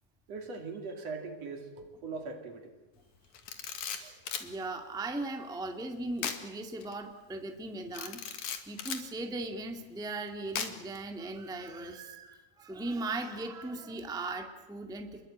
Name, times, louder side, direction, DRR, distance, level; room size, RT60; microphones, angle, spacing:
voice 1, 0.3-2.7 3.9-4.2, right 4 dB, 55° right, 4 dB, 3.6 m, -41 dB
Camera, 3.3-4.5 6.2-6.5 6.8-6.9 7.9-9.1 10.6-11.0, left 7 dB, 70° left, 3.3 m, -37 dB
voice 2, 4.4-8.3 8.7-15.3, right 2 dB, ahead, 4 dB, 1.7 m, -38 dB
27.5 x 22.0 x 8.8 m, 1.2 s
omnidirectional pair, 3.5 m